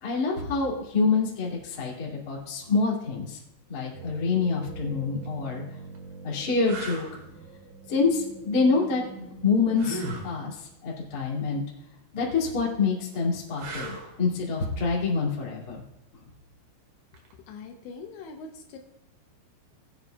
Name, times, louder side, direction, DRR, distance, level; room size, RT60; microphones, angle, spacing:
voice 1, 0.0-3.4 3.7-5.6 6.2-7.1 7.9-10.5 10.8-11.6 12.1-15.8, left 4 dB, 40° left, -4 dB, 1.4 m, -26 dB
sound 1, 3.9-10.6, right 4 dB, 80° right, 4.4 m, -44 dB
sound 2, 5.1-5.3 5.9-6.0 6.6-7.1 9.8-10.3 13.6-14.2 17.1-17.3, right 2 dB, 60° right, 3.3 m, -36 dB
voice 2, 17.5-18.8, left 4 dB, 80° left, 3 dB, 2.7 m, -42 dB
20.0 x 8.9 x 2.3 m, 0.90 s
omnidirectional pair, 5.9 m